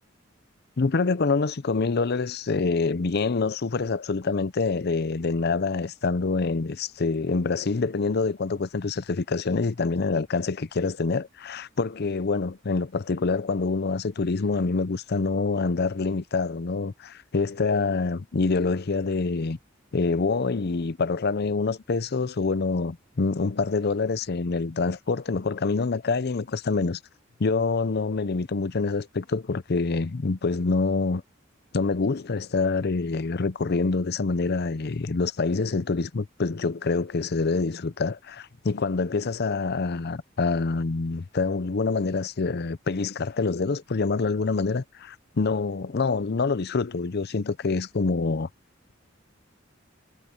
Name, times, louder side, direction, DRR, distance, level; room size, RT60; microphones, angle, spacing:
voice 1, 0.8-19.6 19.9-27.0 27.4-31.2 31.7-48.5, left 4 dB, 55° left, 0.6 m, -26 dB
head